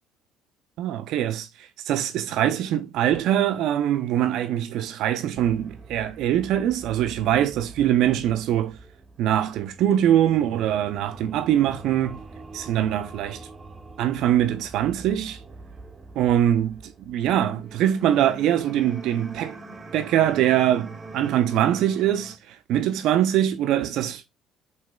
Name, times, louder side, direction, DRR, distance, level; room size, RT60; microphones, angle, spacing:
voice 1, 0.8-8.8 9.2-12.2 12.5-13.4 14.0-15.4 16.2-19.6 19.9-24.2, right 11 dB, 65° right, 0.7 m, -23 dB
sound 1, 5.4-22.4, right 3 dB, 25° right, 0.9 m, -44 dB
6.1 x 3.2 x 2.4 m
hypercardioid pair, 60°, 0 cm